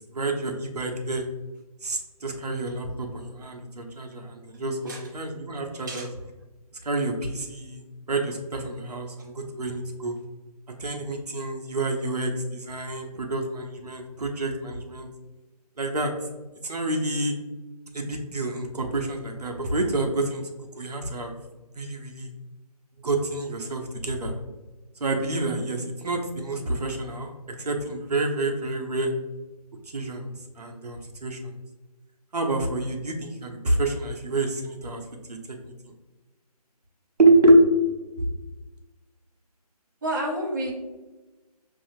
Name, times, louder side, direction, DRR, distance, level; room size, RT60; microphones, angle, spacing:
voice 1, 0.1-1.3 1.8-6.1 6.8-10.1 10.8-15.1 15.8-16.1 16.6-17.4 17.9-21.3 21.8-22.3 23.0-24.3 25.0-29.1 29.9-31.5 32.3-35.0 35.3-35.4 37.2-37.7 38.2-38.3, right 2 dB, 75° right, 2 dB, 0.8 m, -27 dB
voice 2, 40.0-40.7, right 1 dB, 30° right, -3 dB, 0.8 m, -29 dB
5.7 x 2.8 x 2.7 m, 1.2 s
figure-of-eight pair, 160°, 20 cm